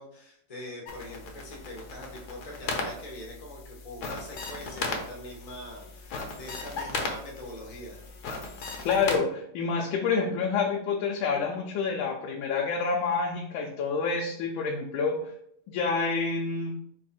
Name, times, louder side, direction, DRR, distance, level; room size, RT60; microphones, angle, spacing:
voice 1, 0.0-8.0, left 1 dB, 35° left, -1 dB, 0.6 m, -43 dB
sound 1, 0.9-9.2, left 3 dB, 65° left, 1.1 m, -37 dB
voice 2, 8.8-15.2 15.7-16.7, left 5 dB, 80° left, 1 dB, 1.4 m, -28 dB
4.5 x 2.4 x 4.2 m, 0.70 s
omnidirectional pair, 2.1 m